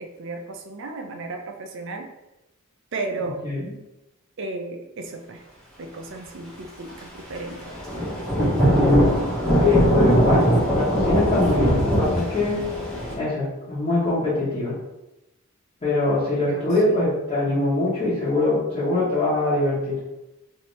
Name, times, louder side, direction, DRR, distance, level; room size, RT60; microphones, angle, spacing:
voice 1, 0.0-2.1 2.9-3.4 4.4-5.4 5.8-7.6 9.6-10.0 10.6-10.8 11.3-11.8 16.4-17.0, right 3 dB, 60° right, 4 dB, 0.4 m, -34 dB
Thunder / Rain, 7.6-13.1, equal, 5° left, 0.8 m, -20 dB
voice 2, 8.5-9.2 9.6-12.6 13.2-14.7 15.8-20.0, left 2 dB, 30° left, -13 dB, 1.1 m, -23 dB
2.8 x 2.6 x 3.1 m, 0.94 s
head